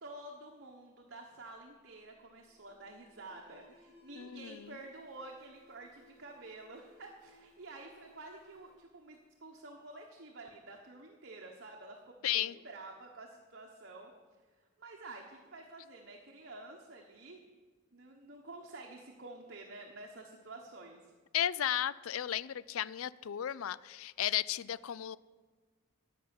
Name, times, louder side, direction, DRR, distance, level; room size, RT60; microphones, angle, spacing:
voice 1, 0.0-14.1 14.8-17.4 17.9-21.0, right 2 dB, 50° right, 1.2 m, -50 dB
Alarm, 1.3-9.9, left 2 dB, 15° left, 4.2 m, -65 dB
voice 2, 4.2-4.7 12.2-12.5 21.3-25.2, left 11 dB, 80° left, 0.4 m, -34 dB
11.0 x 6.9 x 9.6 m
head